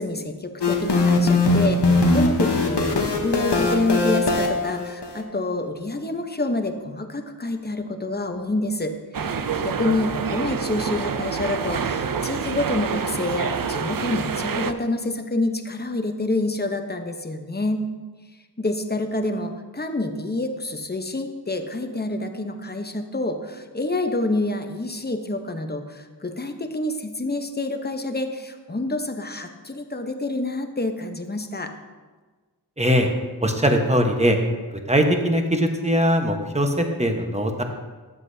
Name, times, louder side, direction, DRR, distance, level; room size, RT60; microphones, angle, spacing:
voice 1, 0.0-17.9 18.6-31.7, left 2 dB, 25° left, 6 dB, 0.9 m, -27 dB
sound 1, 0.6-5.2, left 2 dB, 85° left, 1.1 m, -20 dB
sound 2, 9.1-14.7, right 6 dB, 55° right, 0.6 m, -27 dB
voice 2, 32.8-33.1 33.4-34.4 34.7-37.6, equal, 15° right, 4 dB, 1.1 m, -21 dB
13.0 x 8.2 x 2.7 m, 1.4 s
wide cardioid pair, 50°, 40 cm